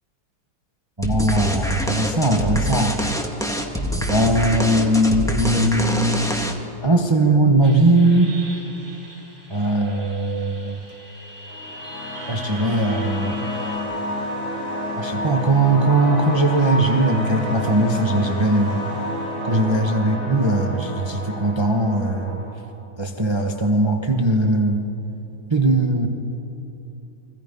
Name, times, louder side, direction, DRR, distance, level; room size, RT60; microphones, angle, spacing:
sound 1, 1.0-6.8, equal, ahead, 1.6 m, -25 dB
voice 1, 1.0-3.0 4.1-6.3 6.8-8.4 9.5-10.8 12.3-13.4 14.9-18.8 19.4-22.4 23.0-24.8 25.5-26.1, right 2 dB, 15° right, 3 dB, 1.2 m, -19 dB
sound 2, 7.6-13.8, right 1 dB, 40° right, 4.6 m, -41 dB
sound 3, 11.5-22.5, left 1 dB, 75° left, 8.8 m, -29 dB
29.5 x 23.5 x 5.4 m, 3.0 s
omnidirectional pair, 1.8 m